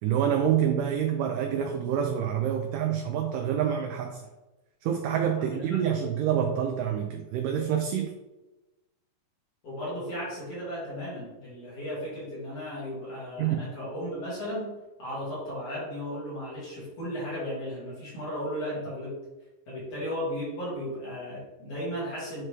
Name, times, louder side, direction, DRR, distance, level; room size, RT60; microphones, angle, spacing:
voice 1, 0.0-4.2 4.8-8.1 13.4-13.6, right 9 dB, 85° right, 5 dB, 1.9 m, -27 dB
voice 2, 5.3-6.0 9.6-19.1 19.7-22.4, equal, 45° left, -8 dB, 3.3 m, -35 dB
7.5 x 4.3 x 3.3 m, 1.1 s
omnidirectional pair, 4.2 m